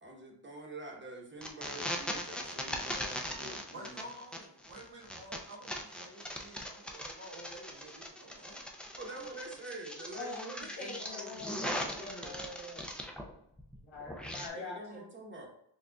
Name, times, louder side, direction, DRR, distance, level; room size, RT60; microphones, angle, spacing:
voice 1, 0.0-4.1 9.0-12.3 14.5-15.5, right 1 dB, 25° right, 0 dB, 1.0 m, -46 dB
sound 1, 1.4-13.3 13.6-14.5, equal, ahead, 0.4 m, -40 dB
voice 2, 3.7-9.2, right 1 dB, 65° right, -2 dB, 1.5 m, -51 dB
voice 3, 10.2-12.8 13.7-15.0, left 2 dB, 90° left, -3 dB, 1.4 m, -44 dB
6.2 x 2.4 x 2.3 m, 0.75 s
wide cardioid pair, 105°, 45 cm